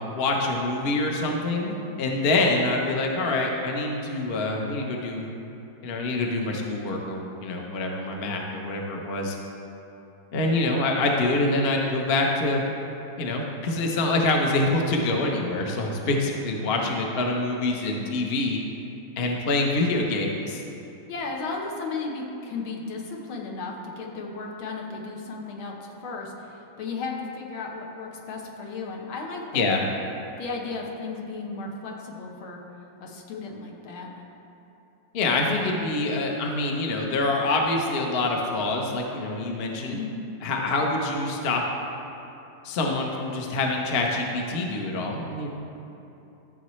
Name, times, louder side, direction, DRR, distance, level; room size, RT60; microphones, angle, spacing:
voice 1, 0.0-5.3 5.8-9.4 10.3-12.6 13.2-18.6 19.2-20.6 29.5-29.8 35.1-40.0 40.4-41.6 42.6-45.5, left 2 dB, 50° left, 0 dB, 0.8 m, -25 dB
voice 2, 21.1-29.7 30.4-32.6 33.0-34.1 39.9-40.1, left 4 dB, 80° left, 0 dB, 1.8 m, -35 dB
13.5 x 7.1 x 3.1 m, 2.9 s
omnidirectional pair, 2.2 m